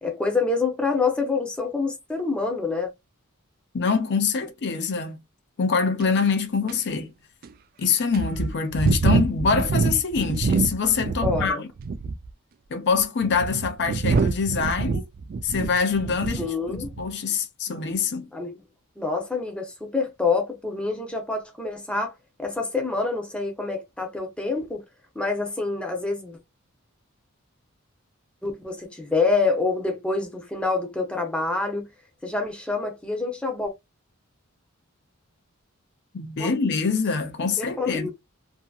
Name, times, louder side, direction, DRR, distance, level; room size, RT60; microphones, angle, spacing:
voice 1, 0.0-2.9 11.2-11.6 16.4-16.9 18.3-18.6 19.0-22.1 22.4-24.8 25.1-26.4 28.4-31.9 32.2-33.7 36.4-36.5 37.6-38.1, left 4 dB, 5° left, 0.7 m, -26 dB
voice 2, 3.7-5.2 5.6-7.1 7.8-11.7 12.7-15.1 15.4-16.5 17.0-18.3 36.1-38.1, left 5 dB, 55° left, 0.5 m, -24 dB
sound 1, 6.0-6.1 6.7-6.8 7.4-7.5 8.1-11.5 11.8-12.3 13.0-16.5 16.8-17.1, right 4 dB, 45° right, 0.3 m, -25 dB
2.8 x 2.7 x 2.3 m
head